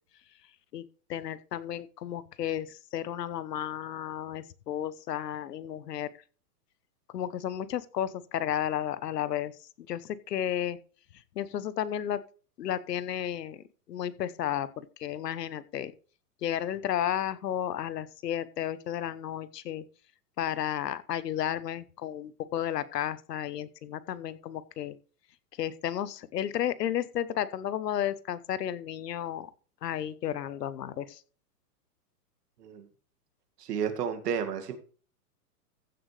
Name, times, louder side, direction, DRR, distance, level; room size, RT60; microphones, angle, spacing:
voice 1, 1.1-6.1 7.1-9.5 9.9-10.8 11.4-12.2 12.6-15.9 16.4-19.8 20.4-24.9 25.6-29.5 29.8-31.2, left 10 dB, 80° left, 1.1 m, -33 dB
voice 2, 33.6-34.8, right 7 dB, 80° right, 2.3 m, -31 dB
15.0 x 7.8 x 3.3 m
hypercardioid pair, 135°, 47 cm